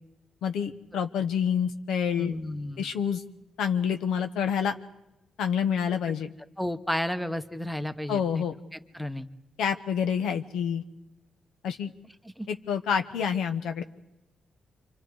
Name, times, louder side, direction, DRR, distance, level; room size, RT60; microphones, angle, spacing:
voice 1, 0.4-2.3 2.8-3.2 3.6-4.8 5.4-6.3 8.1-8.6 9.6-10.8 11.6-11.9 12.5-13.8, left 7 dB, 85° left, 7 dB, 1.0 m, -27 dB
voice 2, 2.2-2.9 6.6-8.4 8.9-9.3 12.4-12.5, left 1 dB, 5° left, 10 dB, 1.1 m, -32 dB
28.0 x 26.0 x 4.8 m, 0.94 s
cardioid pair, 95°, 0 cm